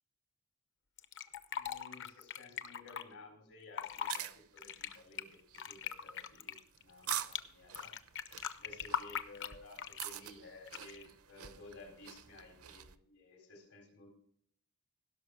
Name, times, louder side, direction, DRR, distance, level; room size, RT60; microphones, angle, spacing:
Fill (with liquid), 1.0-3.0 3.6-4.2 4.6-7.4 7.7-10.2 10.7-11.1, left 8 dB, 55° left, 0.8 m, -41 dB
voice 1, 1.5-8.0 8.6-14.1, left 3 dB, 85° left, 4 dB, 3.9 m, -55 dB
sound 1, 3.9-13.0, right 11 dB, 70° right, 0.7 m, -46 dB
16.5 x 6.1 x 6.3 m, 0.64 s
head